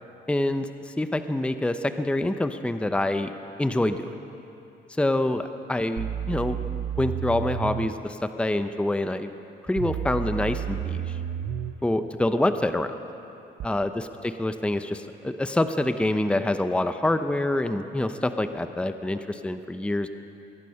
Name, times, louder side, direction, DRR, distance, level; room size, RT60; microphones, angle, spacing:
voice 1, 0.3-0.7 1.0-3.3 3.6-4.1 5.0-9.3 9.6-11.2 11.8-12.9 13.6-20.1, left 1 dB, 5° left, 9 dB, 0.7 m, -26 dB
sound 1, 6.0-7.9 9.8-11.8 13.6-13.7, right 9 dB, 65° right, 0.6 m, -31 dB
23.5 x 10.5 x 5.8 m, 2.9 s
cardioid pair, 90°, 20 cm